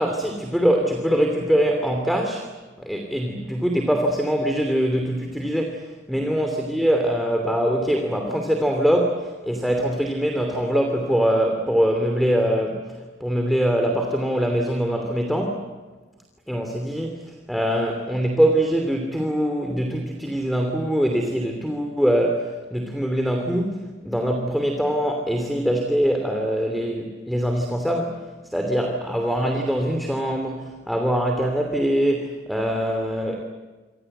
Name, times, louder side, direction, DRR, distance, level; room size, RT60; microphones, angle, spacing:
voice 1, 0.0-2.5 2.8-15.7 16.5-28.2 28.5-33.4, equal, ahead, 3 dB, 2.9 m, -23 dB
28.5 x 25.5 x 8.0 m, 1.3 s
head